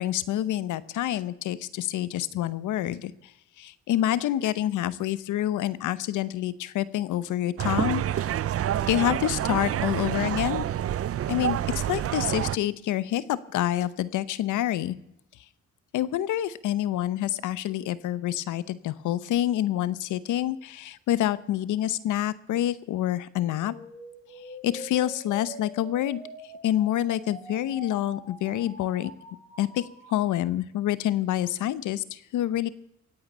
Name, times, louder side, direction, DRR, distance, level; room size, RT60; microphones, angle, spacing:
voice 1, 0.0-3.1 3.6-8.3 8.9-10.7 11.3-14.9 15.9-23.7 24.6-26.2 26.6-29.1 29.6-29.8 30.1-32.7, left 12 dB, 80° left, 17 dB, 0.9 m, -27 dB
sound 1, 7.6-12.6, right 11 dB, 50° right, 0.6 m, -28 dB
sound 2, 23.4-30.4, equal, 25° left, 5.8 m, -45 dB
24.0 x 8.9 x 5.5 m, 0.78 s
cardioid pair, 90°, 30 cm